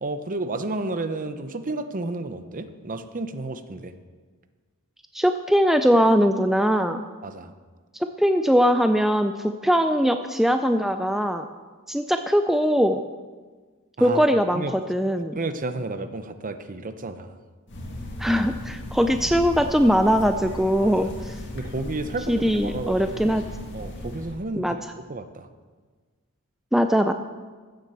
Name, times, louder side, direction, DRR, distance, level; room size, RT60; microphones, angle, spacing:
voice 1, 0.0-3.9 7.2-7.5 14.0-14.2 14.5-14.7 15.4-17.3 20.8-20.9 21.5-23.4 23.7-25.5, right 2 dB, 40° right, 10 dB, 0.8 m, -32 dB
voice 2, 5.1-7.0 8.2-11.5 11.9-13.0 14.0-14.6 14.9-15.4 18.2-21.4 22.3-23.4 24.6-24.8 26.7-27.1, equal, ahead, 7 dB, 0.4 m, -21 dB
sound 1, 17.7-24.4, left 1 dB, 55° left, 2.0 m, -36 dB
15.0 x 7.6 x 6.8 m, 1.4 s
head